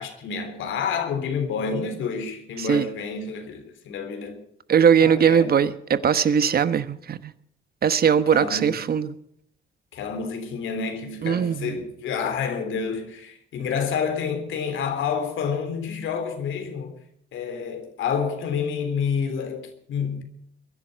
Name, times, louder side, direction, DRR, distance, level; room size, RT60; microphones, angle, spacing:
voice 1, 0.0-4.4 5.0-5.5 8.3-8.9 9.9-17.0 17.3-20.2, left 6 dB, 80° left, 3.4 m, -29 dB
voice 2, 4.7-7.3 7.8-9.1 11.2-11.8, right 7 dB, 50° right, 1.2 m, -20 dB
22.5 x 11.0 x 5.3 m
cardioid pair, 90°, 20 cm